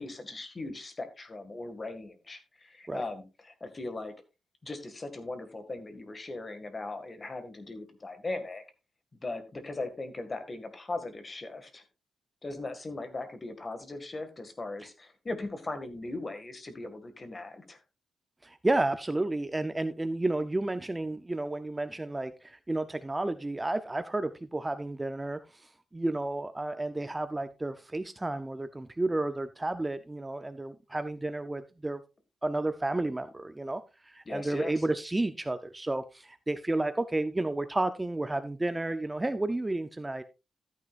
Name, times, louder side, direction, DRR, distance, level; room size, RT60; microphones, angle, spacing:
voice 1, 0.0-4.1 4.6-8.6 9.2-11.8 12.4-17.8 34.3-34.8, left 2 dB, 30° left, 8 dB, 1.9 m, -39 dB
voice 2, 18.4-32.0 32.4-40.2, right 2 dB, 15° right, 10 dB, 0.6 m, -31 dB
13.5 x 9.3 x 2.5 m, 0.28 s
wide cardioid pair, 120°, 0 cm